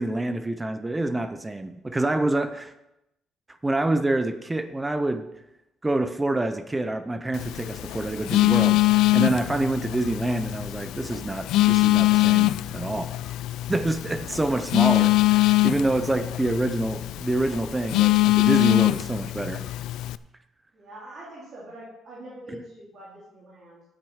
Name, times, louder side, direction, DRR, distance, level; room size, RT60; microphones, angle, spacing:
voice 1, 0.0-2.7 3.6-5.3 5.8-13.1 13.7-19.6 22.5-22.6, right 2 dB, 10° right, 10 dB, 0.5 m, -27 dB
Telephone, 7.3-20.2, left 18 dB, 85° left, 0.3 m, -23 dB
voice 2, 15.6-16.3 20.7-23.8, right 1 dB, 35° right, -7 dB, 3.1 m, -44 dB
8.7 x 8.7 x 6.3 m, 0.88 s
cardioid pair, 175°, 0 cm